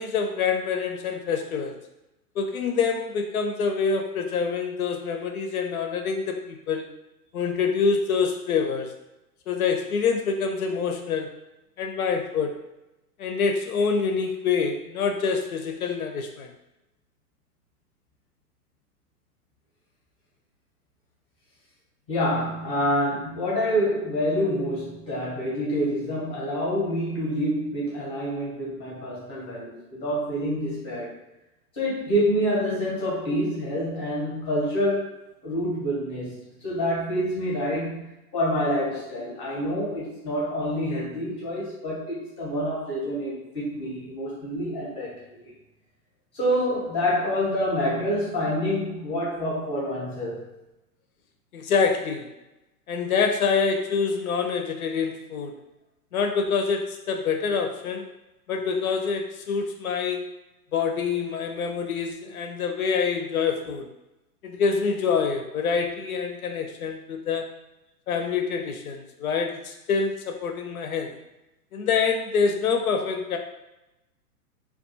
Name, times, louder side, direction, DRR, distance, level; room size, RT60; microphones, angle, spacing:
voice 1, 0.0-1.8 2.4-6.9 7.3-8.9 9.5-11.4 11.8-12.6 13.2-16.5 51.5-52.3 52.9-55.5 56.1-58.1 58.5-60.3 60.7-63.9 64.4-67.5 68.1-71.2 71.7-73.4, left 5 dB, 65° left, 4 dB, 0.5 m, -26 dB
voice 2, 22.1-31.2 31.7-35.1 35.4-45.5 46.3-50.4, equal, 10° left, -6 dB, 0.6 m, -27 dB
2.3 x 2.3 x 2.7 m, 0.96 s
figure-of-eight pair, 120°, 47 cm